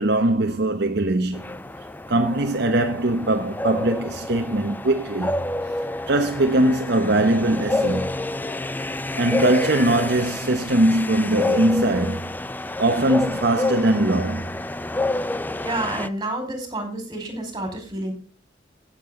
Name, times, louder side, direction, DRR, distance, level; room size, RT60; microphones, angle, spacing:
voice 1, 0.0-1.4 2.1-5.4 6.1-8.1 9.2-12.3 12.8-14.6, right 1 dB, 60° right, 1.2 m, -21 dB
sound 1, 1.3-16.1, left 2 dB, 10° left, 0.5 m, -29 dB
voice 2, 15.6-18.1, right 1 dB, 20° right, 4.9 m, -29 dB
15.5 x 7.8 x 3.8 m
head